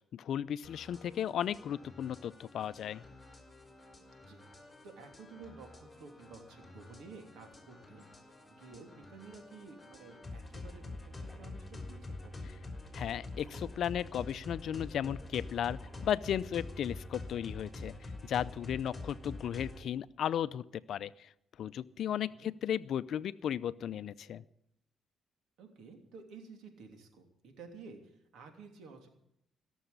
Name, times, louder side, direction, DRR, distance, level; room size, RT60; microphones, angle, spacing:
voice 1, 0.1-3.0 12.9-17.9 18.2-20.6 20.9-21.3 21.6-24.4, left 10 dB, 70° left, 16 dB, 0.5 m, -35 dB
sound 1, 0.6-19.8, left 2 dB, 15° left, 3.6 m, -47 dB
voice 2, 1.0-1.4 4.2-4.5 4.8-12.5 22.4-22.5 25.6-29.1, right 4 dB, 80° right, 5 dB, 2.9 m, -53 dB
17.0 x 7.1 x 9.5 m, 0.76 s
cardioid pair, 90°, 0 cm